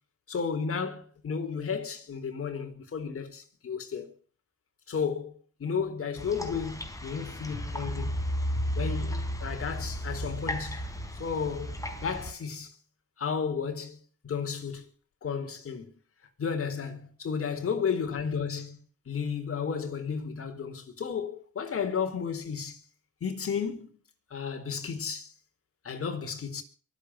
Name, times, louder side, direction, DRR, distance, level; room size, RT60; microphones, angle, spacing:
voice 1, 0.3-4.1 4.9-8.2 8.8-10.8 11.2-11.8 12.0-12.7 13.2-14.0 14.2-14.9 15.2-15.9 16.4-18.8 19.1-22.8 23.2-23.9 24.3-25.3 25.8-26.6, left 6 dB, 50° left, 4.1 m, -33 dB
sound 1, 6.2-12.3, equal, 10° left, 4.3 m, -34 dB
23.5 x 8.4 x 6.1 m
cardioid pair, 90°, 30 cm